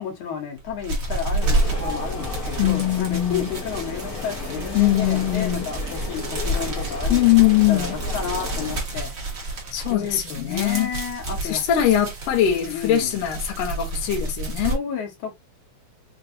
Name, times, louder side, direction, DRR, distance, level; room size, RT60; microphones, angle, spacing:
voice 1, 0.0-7.2 7.7-9.1 9.9-11.6 12.5-13.2 14.7-15.3, left 7 dB, 80° left, 2.5 m, -31 dB
sound 1, 0.6-14.8, right 2 dB, 50° right, 1.0 m, -30 dB
sound 2, 1.4-8.8, left 2 dB, 45° left, 1.3 m, -31 dB
voice 2, 2.6-3.5 4.7-5.7 7.1-8.0 9.7-10.9 11.4-14.8, left 12 dB, 65° left, 2.0 m, -21 dB
5.2 x 2.6 x 2.6 m
omnidirectional pair, 3.4 m